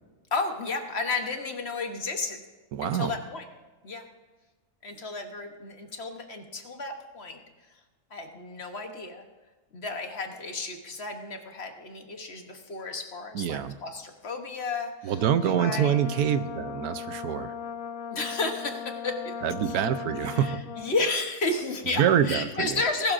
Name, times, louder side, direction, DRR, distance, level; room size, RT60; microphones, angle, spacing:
voice 1, 0.3-2.4 2.8-3.4 3.8-4.0 4.8-7.4 8.1-9.2 9.7-16.0 18.1-19.4 19.7-19.8 20.2-23.1, left 3 dB, 50° left, 5 dB, 1.3 m, -32 dB
voice 2, 2.7-3.1 13.3-13.7 15.0-17.5 19.4-20.6 22.0-22.8, right 9 dB, 85° right, 11 dB, 1.2 m, -25 dB
Brass instrument, 15.2-21.0, left 7 dB, 75° left, 1.2 m, -38 dB
18.5 x 12.0 x 2.6 m, 1.3 s
omnidirectional pair, 1.5 m